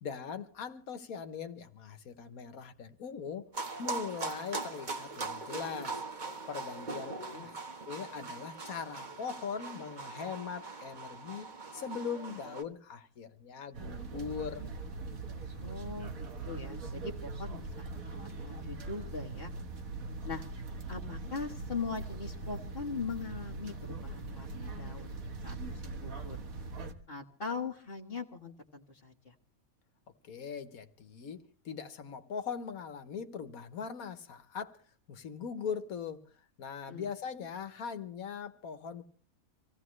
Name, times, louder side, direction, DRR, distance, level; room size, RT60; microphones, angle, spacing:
voice 1, 0.0-3.5 3.8-6.0 6.5-7.1 7.4-7.5 7.9-11.5 11.7-14.7 30.2-34.8 35.1-36.3 36.6-39.0, left 6 dB, 80° left, 1.6 m, -40 dB
sound 1, 3.5-12.6, right 3 dB, 35° right, 1.4 m, -41 dB
sound 2, 13.7-26.9, right 3 dB, 75° right, 1.9 m, -41 dB
voice 2, 15.6-19.5 20.2-20.4 20.9-25.2 25.4-26.4 27.1-29.3 36.9-37.1, left 4 dB, 40° left, 1.6 m, -41 dB
26.0 x 16.0 x 3.2 m
omnidirectional pair, 1.5 m